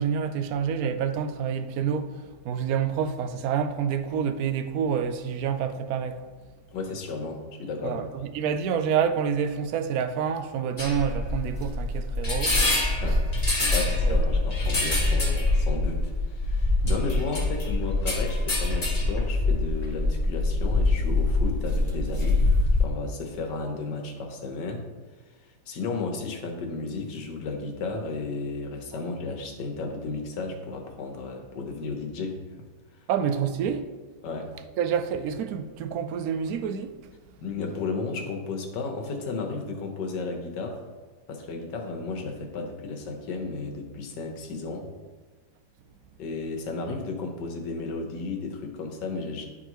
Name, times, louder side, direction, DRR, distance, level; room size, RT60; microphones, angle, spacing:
voice 1, 0.0-6.3 7.8-13.2 13.7-13.8 14.0-14.2 16.8-16.9 28.9-29.0 33.1-33.8 34.8-36.9, right 7 dB, 70° right, 0.9 m, -28 dB
voice 2, 6.7-8.3 12.9-13.2 13.7-22.4 22.8-24.8 25.7-32.4 34.2-34.5 37.4-40.8 41.3-44.9 46.2-49.5, left 3 dB, 90° left, 1.6 m, -33 dB
sound 1, 10.8-22.9, left 2 dB, 25° left, 1.2 m, -24 dB
10.5 x 3.6 x 3.0 m
omnidirectional pair, 1.8 m